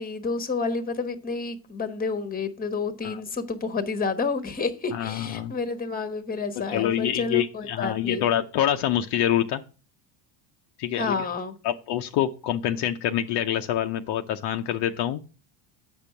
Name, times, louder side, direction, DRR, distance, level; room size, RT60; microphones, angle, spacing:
voice 1, 0.0-8.2 10.9-11.6, left 4 dB, 20° left, 1.1 m, -29 dB
voice 2, 4.9-5.5 6.6-9.6 10.8-11.1 11.6-15.2, left 11 dB, 55° left, 0.7 m, -26 dB
8.0 x 5.3 x 5.9 m
supercardioid pair, 110°, 48 cm